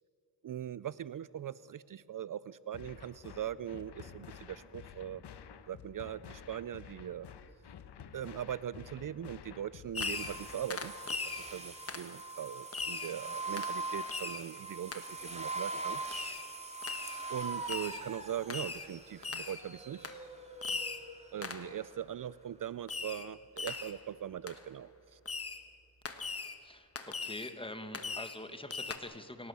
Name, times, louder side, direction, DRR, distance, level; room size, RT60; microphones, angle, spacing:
voice 1, 0.4-5.2 5.7-7.3 8.1-16.4 17.3-20.2 21.3-25.2, right 10 dB, 55° right, 18 dB, 0.5 m, -41 dB
sound 1, 2.7-10.7, left 8 dB, 85° left, 1.0 m, -51 dB
Fireworks, 9.9-10.4 10.7-11.5 11.9-12.1 12.7-13.2 13.6-13.8 14.1-14.5 14.9-15.0 16.1-16.5 16.8-17.2 17.7-18.0 18.5-18.9 19.2-19.6 20.0-20.2 20.6-21.1 21.4-21.7 22.9-23.3 23.6-24.0 24.5-24.6 25.3-25.6 26.1-26.6 27.0-27.5 27.9-28.4 28.7-29.0, left 4 dB, 35° left, 1.4 m, -39 dB
sound 2, 10.1-21.8, right 2 dB, 15° right, 2.3 m, -42 dB
voice 2, 26.6-29.5, left 1 dB, 15° left, 8 dB, 1.5 m, -45 dB
27.5 x 18.0 x 7.0 m, 2.7 s
wide cardioid pair, 110°, 39 cm